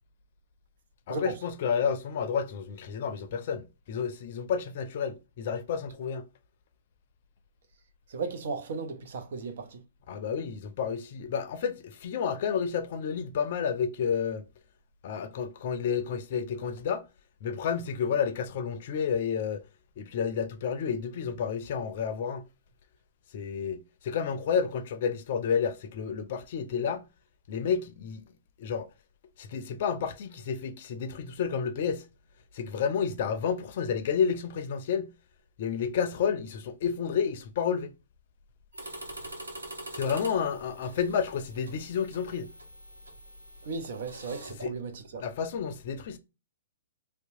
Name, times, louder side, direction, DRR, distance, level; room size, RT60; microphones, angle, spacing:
voice 1, 1.1-6.2 10.1-14.4 15.0-17.0 17.4-19.6 20.0-22.4 23.3-27.0 27.5-28.2 28.6-28.9 29.4-32.0 32.5-35.1 35.6-37.9 39.9-42.5 44.6-44.7 45.2-46.2, left 7 dB, 55° left, 0.5 m, -30 dB
voice 2, 8.1-9.8 43.6-45.2, right 4 dB, 60° right, 0.6 m, -35 dB
sound 1, 38.7-44.5, right 1 dB, 85° right, 0.8 m, -44 dB
2.8 x 2.1 x 2.6 m
hypercardioid pair, 120°, 0 cm